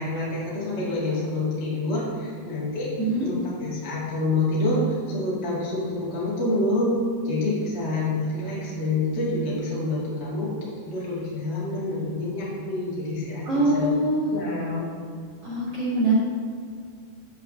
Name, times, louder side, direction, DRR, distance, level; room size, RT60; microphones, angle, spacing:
voice 1, 0.0-7.0 7.2-10.6 10.8-13.9 14.3-14.8, left 2 dB, 90° left, -8 dB, 0.5 m, -27 dB
voice 2, 13.5-14.3 15.4-16.1, right 2 dB, 40° right, -11 dB, 2.3 m, -23 dB
9.0 x 7.9 x 2.9 m, 2.2 s
omnidirectional pair, 5.5 m